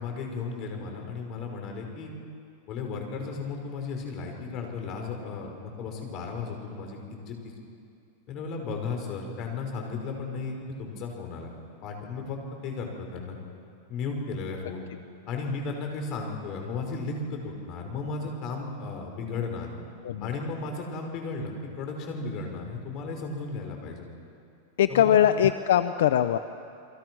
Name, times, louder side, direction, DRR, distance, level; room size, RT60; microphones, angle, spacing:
voice 1, 0.0-2.1 2.7-7.5 8.3-11.5 11.8-13.4 13.9-14.8 15.3-19.7 20.2-24.1 24.9-25.2, left 4 dB, 40° left, 3 dB, 5.4 m, -35 dB
voice 2, 24.8-26.4, left 10 dB, 80° left, 11 dB, 0.8 m, -21 dB
29.5 x 23.5 x 6.3 m, 2.5 s
supercardioid pair, 140°, 0 cm